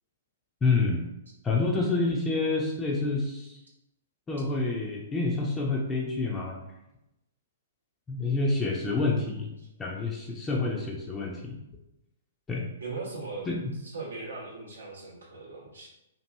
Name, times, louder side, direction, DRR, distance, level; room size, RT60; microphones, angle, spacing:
voice 1, 0.6-1.1 1.4-3.6 4.3-6.6 8.1-9.5 9.8-11.6 12.5-12.6 13.5-13.7, left 3 dB, 15° left, -2 dB, 0.4 m, -28 dB
voice 2, 12.8-13.5 13.7-15.9, right 3 dB, 80° right, -4 dB, 0.7 m, -39 dB
2.8 x 2.5 x 2.2 m, 0.89 s
figure-of-eight pair, 115°, 0 cm